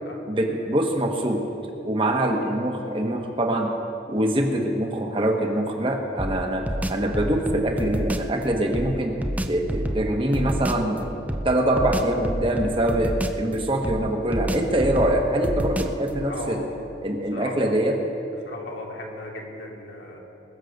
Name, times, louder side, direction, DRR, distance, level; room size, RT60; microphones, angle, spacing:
voice 1, 0.3-1.4 1.8-3.7 4.1-9.2 9.5-16.6 17.0-18.0, right 1 dB, 30° right, 3 dB, 1.3 m, -24 dB
sound 1, 6.2-8.3 8.7-10.9 11.3-13.5 13.8-16.1, right 1 dB, 10° right, 0.5 m, -29 dB
voice 2, 16.3-16.6 17.3-17.8 18.4-20.2, left 2 dB, 90° left, -2 dB, 2.6 m, -37 dB
21.0 x 7.4 x 6.6 m, 2.9 s
head